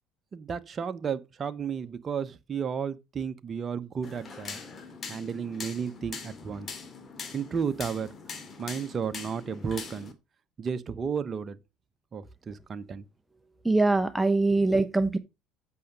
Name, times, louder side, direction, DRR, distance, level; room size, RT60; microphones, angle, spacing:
voice 1, 0.3-4.6 5.1-6.7 7.3-8.1 8.6-10.1 10.6-11.6 12.1-13.0 14.5-14.6, right 6 dB, 35° right, 1.0 m, -33 dB
sound 1, 4.0-10.1, left 5 dB, 35° left, 2.3 m, -42 dB
voice 2, 13.6-15.2, right 2 dB, 5° right, 1.0 m, -23 dB
8.3 x 6.6 x 5.3 m
hypercardioid pair, 80°, 0 cm